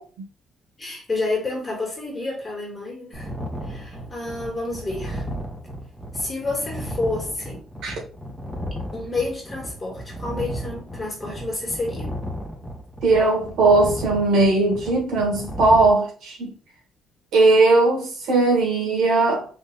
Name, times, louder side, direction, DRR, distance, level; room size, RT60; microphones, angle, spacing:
voice 1, 0.8-3.3 3.6-5.3 6.1-7.6 8.9-12.1, left 2 dB, 20° left, 2.1 m, -29 dB
sound 1, 3.1-15.9, equal, 5° right, 0.9 m, -34 dB
voice 2, 13.0-16.5 17.3-19.5, right 3 dB, 80° right, 2.0 m, -18 dB
4.2 x 3.2 x 3.4 m
cardioid pair, 165°, 0 cm